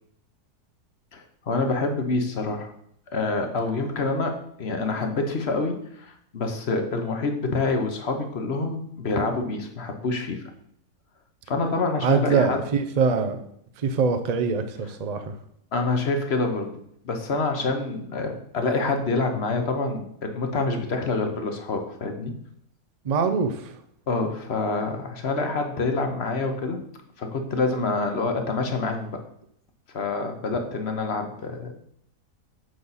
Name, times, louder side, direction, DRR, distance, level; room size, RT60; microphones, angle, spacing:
voice 1, 1.1-2.7 3.1-10.4 11.5-12.6 14.8-14.9 15.7-16.7 17.0-22.4 24.1-26.8 27.2-29.2 29.9-31.7, left 3 dB, 45° left, 5 dB, 1.1 m, -27 dB
voice 2, 12.0-13.4 13.8-15.3 23.0-23.6, right 5 dB, 55° right, 8 dB, 0.4 m, -23 dB
7.9 x 5.4 x 4.1 m, 0.70 s
omnidirectional pair, 1.7 m